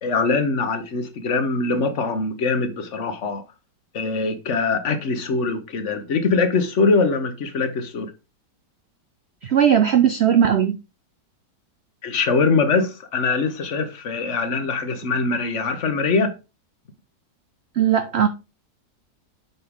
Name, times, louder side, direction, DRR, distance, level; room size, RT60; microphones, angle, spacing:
voice 1, 0.0-3.4 3.9-8.1 12.0-16.3, left 4 dB, 45° left, 1.2 m, -22 dB
voice 2, 9.4-10.8 17.7-18.3, right 9 dB, 75° right, 0.6 m, -18 dB
7.9 x 5.6 x 3.6 m
omnidirectional pair, 1.9 m